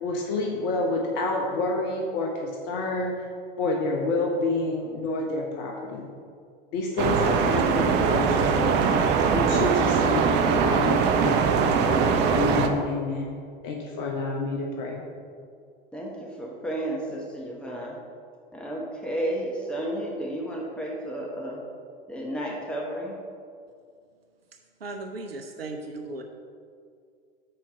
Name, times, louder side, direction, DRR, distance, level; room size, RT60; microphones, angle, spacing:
voice 1, 0.0-3.3 3.6-6.1 6.7-8.9 9.3-11.8 12.3-13.4 13.6-15.0, left 2 dB, 50° left, 0 dB, 1.0 m, -28 dB
sound 1, 7.0-12.7, right 6 dB, 35° right, 0.6 m, -22 dB
voice 2, 15.9-18.0 18.5-21.6 22.1-23.2, right 1 dB, 5° left, -2 dB, 1.0 m, -32 dB
voice 3, 24.8-26.2, right 2 dB, 85° right, 4 dB, 0.6 m, -36 dB
6.5 x 4.4 x 5.4 m, 2.2 s
figure-of-eight pair, 85°, 29 cm